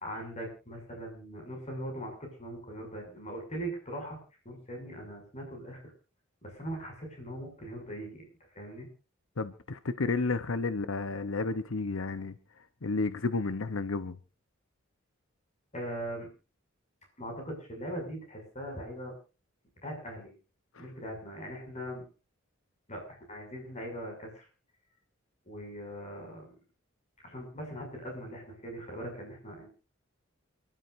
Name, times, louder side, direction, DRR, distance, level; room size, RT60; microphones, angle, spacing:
voice 1, 0.0-4.2 4.4-5.8 6.4-8.2 8.5-8.9 15.7-16.3 17.2-19.1 19.8-20.3 20.8-22.0 22.9-24.5 25.4-26.6 27.2-29.7, right 1 dB, 35° left, 2 dB, 6.8 m, -40 dB
voice 2, 9.4-12.4 12.8-14.2 20.7-20.9, left 3 dB, 85° left, 12 dB, 0.9 m, -31 dB
28.5 x 12.5 x 2.6 m, 0.33 s
head